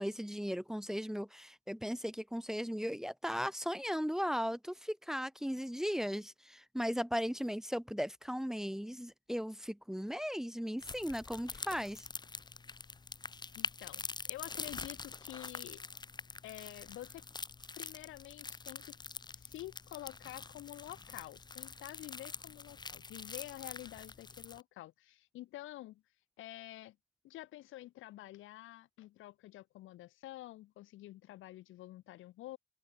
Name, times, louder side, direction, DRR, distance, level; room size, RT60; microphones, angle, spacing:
voice 1, 0.0-12.1, equal, ahead, 1.2 m, -37 dB
sound 1, 10.8-24.6, left 4 dB, 20° left, 0.7 m, -45 dB
voice 2, 13.5-15.8 16.4-17.2 17.8-19.0 19.3-26.0 26.4-27.0 27.2-32.6, left 15 dB, 90° left, 2.7 m, -49 dB
open air
cardioid pair, 90°, 20 cm